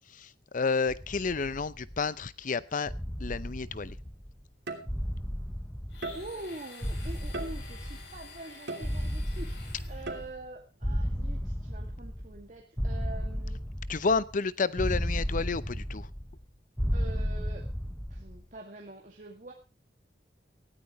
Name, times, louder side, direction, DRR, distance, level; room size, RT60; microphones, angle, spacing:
voice 1, 0.5-2.9 3.2-4.0 13.9-16.1, left 4 dB, 50° left, 17 dB, 0.7 m, -30 dB
sound 1, 0.9-2.2 2.9-4.4 4.9-6.5 6.8-8.4 8.8-10.5 10.8-12.4 12.8-14.4 14.8-16.4 16.8-18.4, equal, 5° left, 1.1 m, -34 dB
sound 2, 3.4-3.7 4.7-5.3 6.0-6.6 7.3-8.0 8.7-9.4 10.1-10.6, right 2 dB, 80° right, 2.9 m, -40 dB
Domestic sounds home sounds, 5.9-10.3, left 4 dB, 90° left, 6.3 m, -50 dB
voice 2, 6.1-13.6 16.9-17.7 18.1-19.5, right 2 dB, 45° right, 1 dB, 2.1 m, -45 dB
18.5 x 13.5 x 3.1 m, 0.30 s
head